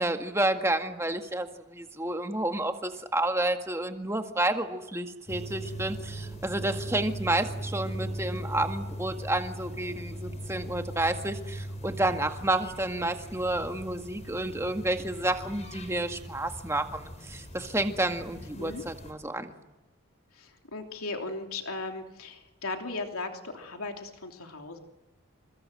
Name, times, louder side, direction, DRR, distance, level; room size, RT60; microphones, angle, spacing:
voice 1, 0.0-19.5, right 1 dB, 10° right, 5 dB, 1.9 m, -30 dB
sound 1, 5.3-19.1, right 1 dB, 30° left, 5.5 m, -39 dB
voice 2, 20.4-24.8, left 3 dB, 85° left, 3 dB, 3.2 m, -37 dB
28.0 x 25.5 x 7.7 m, 0.99 s
head